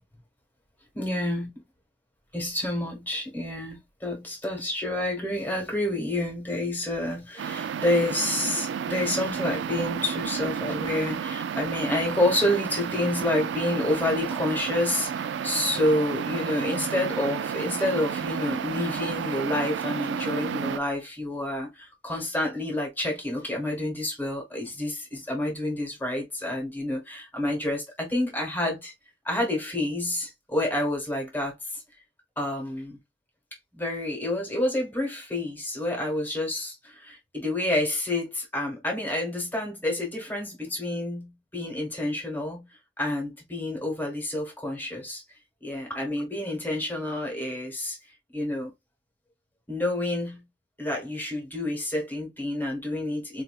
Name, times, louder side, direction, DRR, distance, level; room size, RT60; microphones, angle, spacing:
voice 1, 0.9-1.5 2.3-28.9 29.2-31.8 32.4-33.0 33.7-42.7 43.0-45.2 45.6-48.0 48.3-48.7 49.7-50.4 50.8-53.4, left 1 dB, 10° left, 1.3 m, -29 dB
sound 1, 7.4-20.8, right 7 dB, 80° right, 0.3 m, -31 dB
4.1 x 2.6 x 2.3 m
head